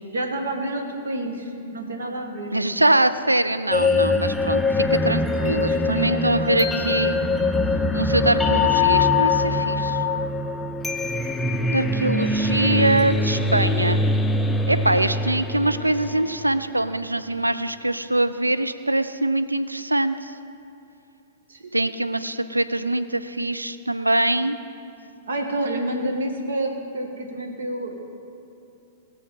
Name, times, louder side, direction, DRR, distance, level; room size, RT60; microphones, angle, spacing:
voice 1, 0.1-2.5 5.0-7.0 21.5-21.7 25.3-27.9, right 1 dB, 70° right, 3 dB, 1.8 m, -29 dB
voice 2, 2.5-7.2 7.9-10.0 11.7-14.0 14.7-20.3 21.7-24.6, right 1 dB, 90° right, 11 dB, 0.5 m, -23 dB
sound 1, 3.7-16.7, left 3 dB, 5° left, 0.6 m, -23 dB
19.5 x 7.0 x 5.5 m, 2.7 s
figure-of-eight pair, 105°, 0 cm